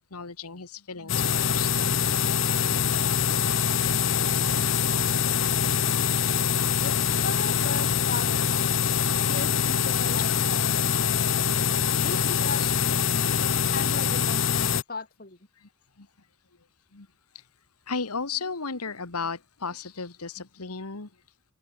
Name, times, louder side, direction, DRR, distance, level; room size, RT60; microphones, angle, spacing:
voice 1, 0.1-1.7 5.5-6.0 6.4-6.7 10.1-10.2 12.1-12.2 12.6-12.7 13.2-13.4 16.9-17.1 17.9-21.1, left 5 dB, 90° left, 1.8 m, -35 dB
sound 1, 1.1-14.8, left 7 dB, 60° left, 0.9 m, -24 dB
voice 2, 6.8-8.9 9.3-11.7 12.0-12.6 13.7-15.4, left 3 dB, 40° left, 3.1 m, -37 dB
head